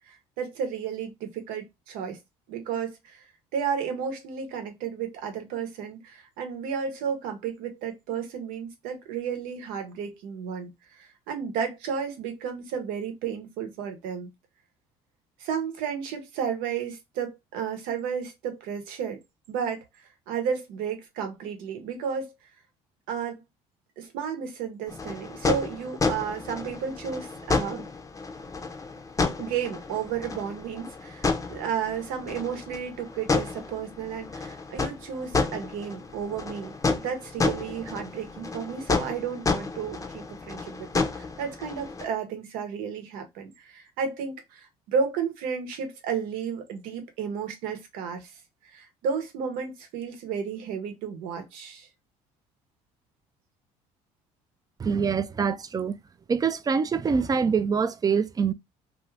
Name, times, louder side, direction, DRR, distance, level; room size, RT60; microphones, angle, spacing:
voice 1, 0.1-2.2 2.5-3.2 3.5-14.3 15.4-19.2 19.5-19.8 20.3-22.3 23.1-23.4 24.0-27.9 29.4-48.3 48.7-51.9, right 7 dB, 80° right, 0.9 m, -32 dB
sound 1, 24.9-42.1, left 4 dB, 20° left, 0.6 m, -31 dB
voice 2, 54.8-55.9 56.3-58.5, right 6 dB, 25° right, 0.4 m, -25 dB
2.6 x 2.3 x 3.2 m
supercardioid pair, 80°, 15 cm